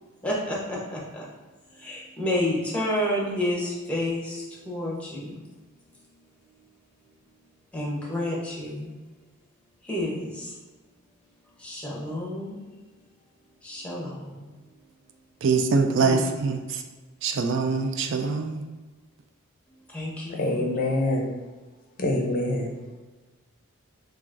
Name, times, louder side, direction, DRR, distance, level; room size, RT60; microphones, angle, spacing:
voice 1, 0.2-1.2 1.8-5.3 7.7-8.9 9.8-10.5 11.6-12.6 13.6-14.4 16.0-16.2 19.9-20.7, left 1 dB, 5° left, -4 dB, 0.8 m, -30 dB
voice 2, 15.4-16.8 17.2-18.6, right 4 dB, 60° right, 5 dB, 0.3 m, -24 dB
voice 3, 20.4-21.3 22.0-22.7, left 1 dB, 40° left, 1 dB, 0.5 m, -25 dB
6.0 x 2.4 x 2.5 m, 1.3 s
head